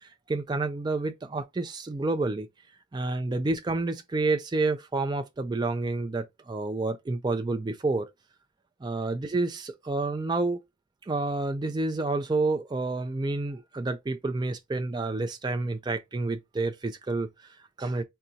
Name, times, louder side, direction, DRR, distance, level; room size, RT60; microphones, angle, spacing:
voice 1, 0.0-2.5 2.9-8.1 8.8-10.6 11.1-18.0, right 3 dB, 20° right, 0.3 m, -29 dB
3.8 x 2.3 x 2.7 m
head